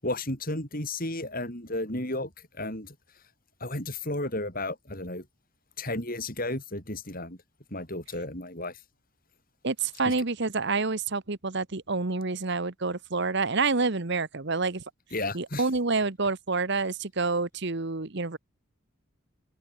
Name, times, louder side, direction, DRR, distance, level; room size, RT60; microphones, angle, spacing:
voice 1, 0.0-3.0 3.6-5.3 5.8-7.4 7.7-8.8 10.1-10.2 15.1-15.7, left 2 dB, 40° left, 7.4 m, -33 dB
voice 2, 9.6-14.8 15.3-18.4, right 3 dB, 55° right, 1.2 m, -28 dB
open air
head